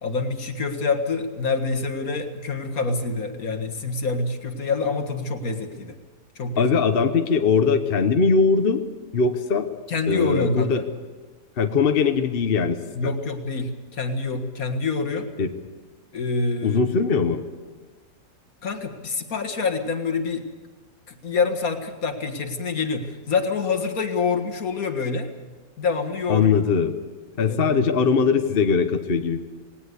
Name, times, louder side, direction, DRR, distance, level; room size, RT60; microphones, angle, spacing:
voice 1, 0.0-5.9 6.4-6.7 9.9-10.9 13.0-15.3 16.1-16.8 18.6-20.4 21.1-25.3 25.8-26.5 27.4-27.8, left 4 dB, 70° left, 6 dB, 2.1 m, -26 dB
voice 2, 6.6-8.8 9.1-9.7 10.1-10.8 11.6-13.1 15.4-15.5 16.6-17.4 26.3-26.9 27.4-29.4, left 5 dB, 45° left, 7 dB, 1.1 m, -21 dB
19.0 x 18.0 x 8.2 m, 1.3 s
omnidirectional pair, 1.6 m